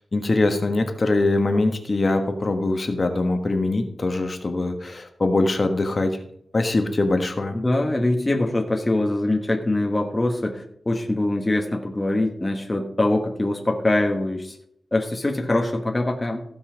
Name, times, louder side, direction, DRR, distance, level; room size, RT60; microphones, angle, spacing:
voice 1, 0.1-6.2 6.5-7.5, left 2 dB, 40° left, 6 dB, 1.4 m, -22 dB
voice 2, 7.5-14.5 14.9-16.4, left 2 dB, 20° left, 2 dB, 1.2 m, -23 dB
15.5 x 5.6 x 5.1 m, 0.70 s
wide cardioid pair, 110°, 0 cm